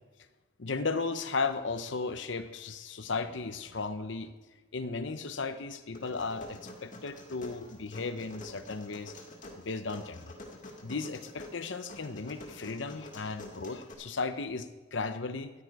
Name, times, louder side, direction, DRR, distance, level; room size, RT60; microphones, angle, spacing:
voice 1, 0.6-4.3 4.7-9.1 9.6-10.3 10.8-15.5, left 4 dB, 65° left, 10 dB, 0.8 m, -35 dB
sound 1, 5.9-13.9, left 1 dB, 40° left, 2.1 m, -48 dB
13.5 x 11.5 x 4.8 m, 1.3 s
head